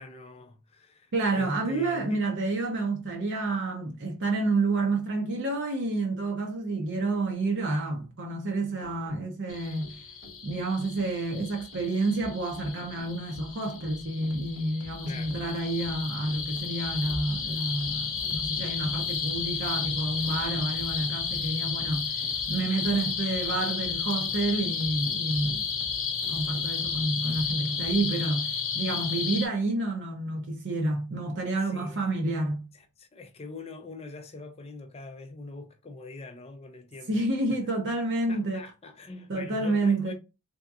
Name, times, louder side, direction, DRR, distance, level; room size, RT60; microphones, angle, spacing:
voice 1, 0.0-2.2 15.1-15.4 31.6-32.1 32.7-37.2 37.5-37.6 38.3-40.1, left 3 dB, 25° left, 0.4 m, -43 dB
voice 2, 1.1-10.0 10.4-22.2 22.5-25.7 26.3-32.7 37.1-38.6 39.3-40.1, right 2 dB, 55° right, 0.6 m, -29 dB
sound 1, 8.8-28.0, equal, 85° right, 1.0 m, -49 dB
sound 2, 9.5-29.5, left 6 dB, 60° left, 0.8 m, -32 dB
3.5 x 2.7 x 2.3 m
head